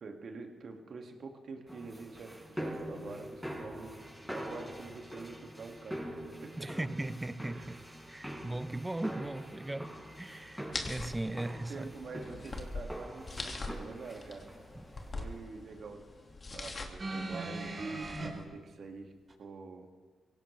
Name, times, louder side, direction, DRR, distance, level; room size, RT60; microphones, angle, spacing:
voice 1, 0.0-4.0 4.3-6.0 6.4-6.7 7.5-7.7 11.7-14.5 15.1-16.0 16.5-19.1 19.4-19.9, right 4 dB, 65° right, 2.1 m, -46 dB
Metal Stairs Foot Steps, 1.7-15.6, equal, ahead, 5.5 m, -44 dB
voice 2, 6.6-7.8 8.1-9.9 10.2-11.9, right 2 dB, 20° right, 0.7 m, -38 dB
sound 1, 10.7-18.4, left 2 dB, 45° left, 2.1 m, -43 dB
sound 2, 17.0-18.3 19.3-19.4, right 2 dB, 45° right, 3.8 m, -37 dB
23.0 x 17.5 x 3.3 m
supercardioid pair, 45°, 0 cm